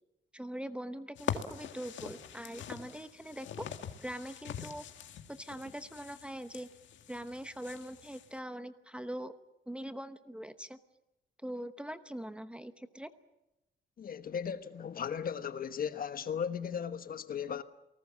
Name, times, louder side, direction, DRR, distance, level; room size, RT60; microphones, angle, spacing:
voice 1, 0.3-3.7 4.0-4.9 5.3-6.7 7.1-9.3 9.7-10.8 11.4-13.1, equal, 5° right, 0.9 m, -42 dB
sound 1, 1.2-8.3, left 8 dB, 70° left, 2.0 m, -43 dB
voice 2, 14.0-17.6, left 7 dB, 45° left, 1.2 m, -36 dB
28.5 x 19.0 x 7.4 m
wide cardioid pair, 165°, 20 cm